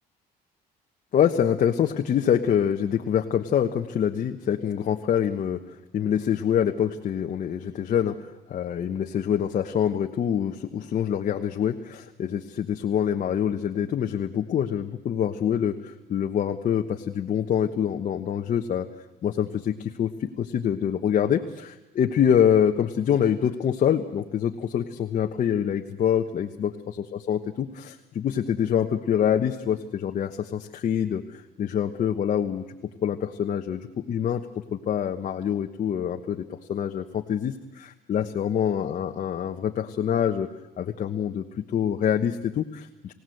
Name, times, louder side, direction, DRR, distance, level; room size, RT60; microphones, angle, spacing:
voice 1, 1.1-18.9 19.2-32.6 33.0-40.5 40.8-43.1, left 9 dB, 50° left, 4 dB, 1.2 m, -25 dB
28.0 x 17.0 x 7.9 m, 0.98 s
cardioid pair, 110°, 17 cm